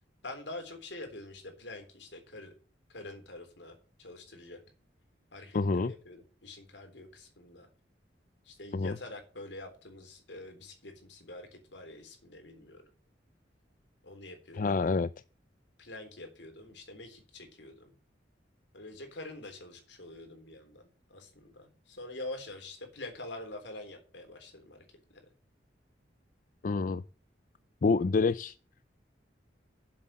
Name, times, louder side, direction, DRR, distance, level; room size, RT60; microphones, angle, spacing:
voice 1, 0.2-2.5 2.9-4.6 5.3-7.7 8.4-12.8 14.0-14.8 15.8-18.0 18.7-24.8 25.1-25.2, left 2 dB, 75° left, 3.6 m, -46 dB
voice 2, 5.5-5.9 8.7-9.0 14.6-15.1 26.6-27.0 27.8-28.5, left 4 dB, 45° left, 0.4 m, -27 dB
7.9 x 7.8 x 7.4 m
head